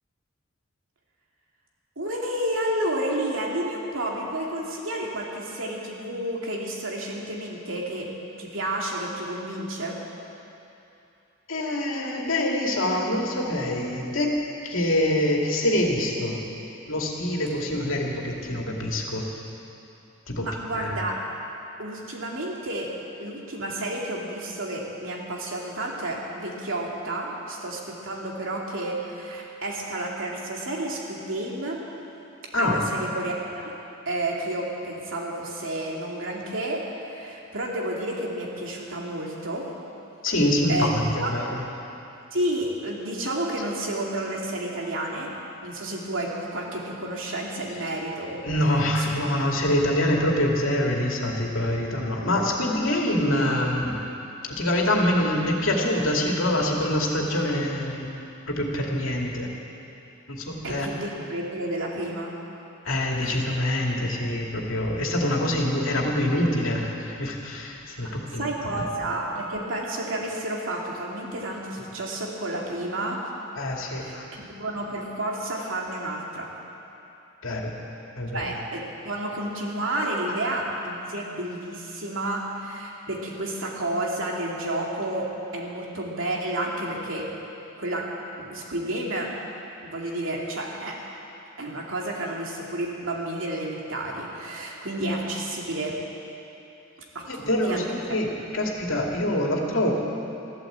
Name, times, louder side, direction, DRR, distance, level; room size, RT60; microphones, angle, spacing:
voice 1, 2.0-8.1 8.4-10.0 20.4-21.2 21.8-22.9 23.2-31.8 32.6-33.7 34.1-39.7 40.7-41.4 42.3-45.3 45.6-48.4 49.0-49.1 60.6-62.3 63.2-63.4 68.0-68.1 68.4-73.2 73.9-76.5 78.3-87.3 87.8-88.1 88.4-89.3 89.8-91.0 91.6-96.0 97.1-97.8 98.1-98.2 98.6-98.7, right 1 dB, 75° right, -2 dB, 2.6 m, -31 dB
voice 2, 11.5-14.4 14.6-16.4 16.9-19.2 20.3-21.0 32.5-32.8 40.2-41.6 48.4-54.0 54.4-58.1 58.5-59.5 60.3-60.9 62.8-68.8 73.5-74.3 77.4-77.7 78.2-78.5 97.2-99.9, left 1 dB, 80° left, -1 dB, 2.3 m, -25 dB
14.0 x 12.5 x 8.0 m, 2.8 s
head